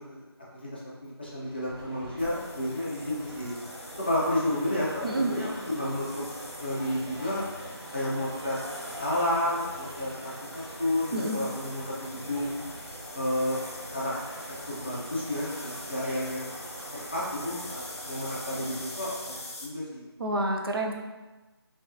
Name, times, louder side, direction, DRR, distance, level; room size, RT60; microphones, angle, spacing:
voice 1, 0.5-3.5 4.0-6.2 6.6-7.4 7.9-8.6 8.8-12.5 13.1-13.6 13.9-14.2 14.7-16.5 17.1-19.1 19.6-20.0, left 1 dB, 25° left, -7 dB, 0.4 m, -31 dB
sound 1, 1.3-19.4, right 1 dB, 80° right, 0.8 m, -43 dB
sound 2, 2.2-19.7, left 2 dB, 80° left, 0.5 m, -45 dB
voice 2, 20.2-20.9, right 1 dB, 60° right, 1 dB, 0.4 m, -28 dB
2.7 x 2.3 x 2.4 m, 1.2 s
figure-of-eight pair, 165°, 14 cm